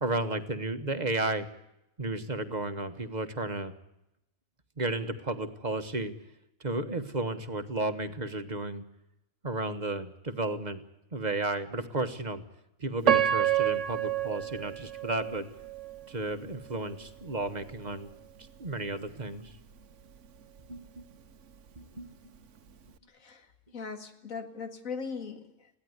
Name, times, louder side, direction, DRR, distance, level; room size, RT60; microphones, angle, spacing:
voice 1, 0.0-1.5 2.0-3.7 4.8-6.1 6.6-8.8 9.4-10.8 11.1-12.4 12.8-15.5 16.1-18.1 18.6-19.5 20.7-21.0 21.7-22.1, right 2 dB, 35° right, 10 dB, 1.5 m, -33 dB
Piano, 13.0-16.1 16.6-16.7 17.4-17.6, right 10 dB, 65° right, 1.3 m, -28 dB
voice 2, 23.1-23.5 23.7-25.7, left 5 dB, 80° left, 8 dB, 2.4 m, -39 dB
21.5 x 16.0 x 9.7 m, 0.87 s
omnidirectional pair, 1.4 m